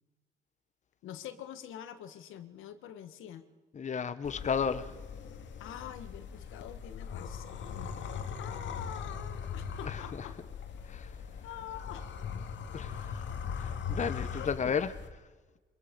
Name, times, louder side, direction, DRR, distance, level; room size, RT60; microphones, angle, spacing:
voice 1, 1.0-3.4 5.6-7.9 8.4-10.4 11.4-12.1 12.4-12.5 12.9-13.1 14.4-14.7, left 10 dB, 90° left, 1.6 m, -45 dB
voice 2, 3.8-4.9 9.9-10.0 10.9-11.1 12.7-13.2 13.6-14.9, left 6 dB, 35° left, 1.0 m, -33 dB
sound 1, 4.2-15.1, left 6 dB, 70° left, 2.1 m, -40 dB
24.5 x 21.5 x 5.3 m
cardioid pair, 90°, 20 cm